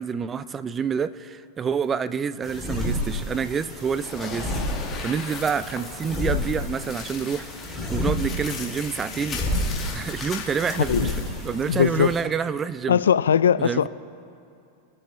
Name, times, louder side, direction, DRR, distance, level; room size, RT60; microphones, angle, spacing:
voice 1, 0.0-4.6 5.0-9.5 9.9-11.1 11.4-13.0 13.6-13.9, right 6 dB, 25° right, 15 dB, 0.4 m, -28 dB
sound 1, 2.4-12.2, left 1 dB, ahead, 2.7 m, -31 dB
sound 2, 3.9-11.3, left 5 dB, 25° left, 1.8 m, -38 dB
voice 2, 11.7-12.1 12.9-13.9, left 8 dB, 90° left, 15 dB, 0.4 m, -20 dB
24.0 x 8.7 x 3.1 m, 2.6 s
hypercardioid pair, 115°, 0 cm